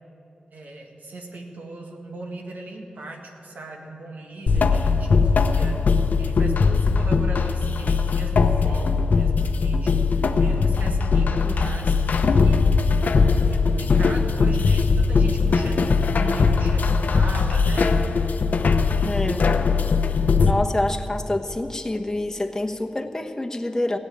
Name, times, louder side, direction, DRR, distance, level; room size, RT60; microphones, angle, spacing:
voice 1, 0.5-5.8 6.2-12.7 13.3-18.3, right 2 dB, 85° right, 1 dB, 1.8 m, -38 dB
sound 1, 4.5-20.5, left 4 dB, 80° left, 0.7 m, -20 dB
voice 2, 11.4-11.8 19.0-19.5 20.4-24.0, left 1 dB, 20° left, 2 dB, 1.1 m, -27 dB
16.0 x 8.8 x 8.9 m, 2.8 s
cardioid pair, 60°, 3 cm